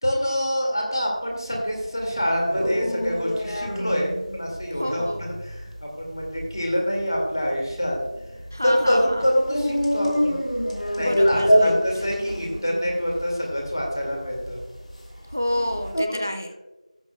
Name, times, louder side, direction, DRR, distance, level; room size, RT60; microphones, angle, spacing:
voice 1, 0.0-8.0 8.6-10.4 11.0-14.6 16.1-16.2, equal, 35° left, -1 dB, 2.2 m, -26 dB
sound 1, 1.7-16.0, equal, 70° left, 3.0 m, -27 dB
voice 2, 4.8-5.2 8.5-9.2 11.0-11.7 15.3-16.5, left 1 dB, 25° right, 6 dB, 0.4 m, -28 dB
18.0 x 7.1 x 2.3 m, 1.1 s
figure-of-eight pair, 180°, 4 cm